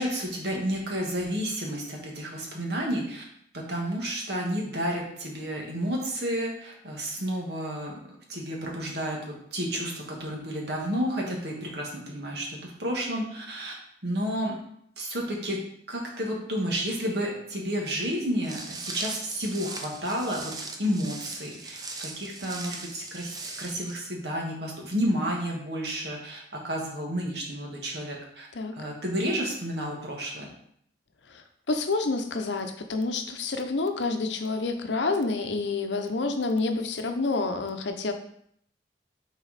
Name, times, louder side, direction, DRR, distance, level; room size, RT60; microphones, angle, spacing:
voice 1, 0.0-3.2 3.5-7.9 8.3-13.7 14.0-14.5 15.0-15.6 15.9-28.5 28.7-30.5, equal, 65° right, -1 dB, 1.6 m, -31 dB
Walk footsteps, 18.4-23.9, right 3 dB, 20° right, 0.6 m, -39 dB
voice 2, 31.3-38.1, left 3 dB, 80° left, 6 dB, 0.7 m, -28 dB
6.1 x 4.2 x 4.1 m, 0.68 s
head